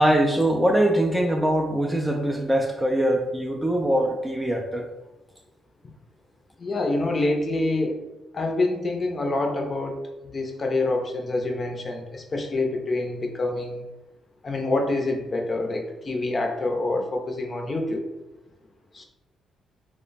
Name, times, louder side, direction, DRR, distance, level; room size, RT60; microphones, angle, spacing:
voice 1, 0.0-4.9, right 1 dB, 5° right, 2 dB, 0.4 m, -22 dB
voice 2, 6.6-8.0 8.3-10.0 10.3-13.8 14.4-18.0 18.9-19.0, left 2 dB, 35° left, 3 dB, 0.6 m, -26 dB
3.0 x 2.1 x 3.9 m, 1.1 s
cardioid pair, 90°, 0 cm